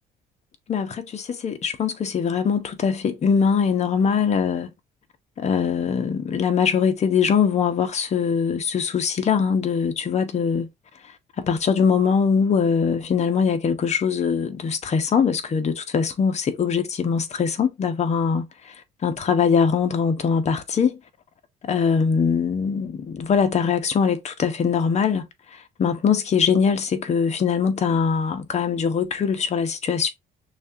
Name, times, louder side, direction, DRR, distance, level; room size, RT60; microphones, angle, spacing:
voice 1, 0.7-4.7 5.4-10.7 11.4-18.5 19.0-21.0 21.6-25.3 25.8-30.1, left 6 dB, 40° left, 0.9 m, -22 dB
6.2 x 2.5 x 2.8 m
cardioid pair, 110°, 17 cm